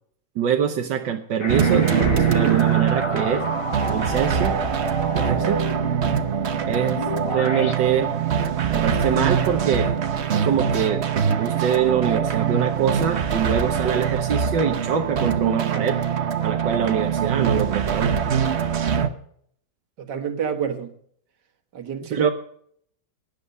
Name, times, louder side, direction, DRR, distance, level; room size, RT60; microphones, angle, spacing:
voice 1, 0.3-3.4 3.8-4.6 5.1-5.6 6.6-8.1 8.7-9.9 10.3-11.1 11.4-16.0 16.4-18.1 22.1-22.3, right 8 dB, 85° right, 1.7 m, -24 dB
sound 1, 1.4-7.7, left 1 dB, 25° left, 0.7 m, -31 dB
sound 2, 1.5-19.1, right 7 dB, 45° right, 1.0 m, -23 dB
voice 2, 20.0-20.9 21.7-22.3, right 8 dB, 70° right, 2.1 m, -27 dB
17.0 x 10.5 x 5.5 m
omnidirectional pair, 1.9 m